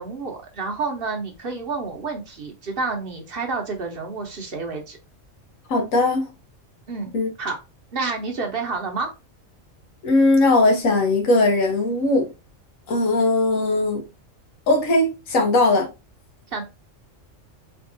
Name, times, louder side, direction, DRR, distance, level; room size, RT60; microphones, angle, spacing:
voice 1, 0.0-5.0 6.9-7.1 7.4-7.6 7.9-9.1 16.5-16.6, right 4 dB, 50° right, 1.0 m, -29 dB
voice 2, 5.7-6.3 7.1-7.3 10.0-12.3 12.9-14.0 14.7-15.9, left 2 dB, 85° left, 1.4 m, -19 dB
4.0 x 3.5 x 2.6 m
omnidirectional pair, 1.3 m